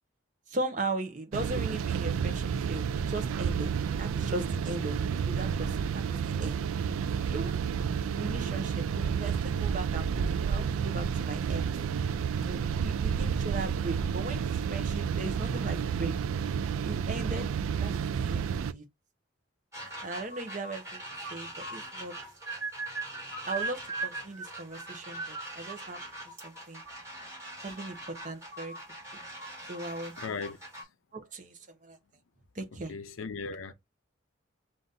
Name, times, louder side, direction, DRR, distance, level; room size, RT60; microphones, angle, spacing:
voice 1, 0.5-3.7 4.0-6.6 7.3-7.6 8.2-11.6 12.4-16.1 16.8-18.8 20.0-21.0 21.3-22.2 23.5-26.0 26.4-26.8 27.6-28.7 29.1-29.2 29.7-30.1 31.1-32.0 32.5-32.9, right 2 dB, 40° right, 0.8 m, -38 dB
sound 1, 1.3-18.7, right 7 dB, 90° right, 0.3 m, -30 dB
sound 2, 19.7-30.8, right 2 dB, 15° right, 2.5 m, -40 dB
voice 2, 30.2-30.6 32.9-33.7, left 4 dB, 80° left, 0.6 m, -37 dB
3.9 x 2.5 x 3.9 m
head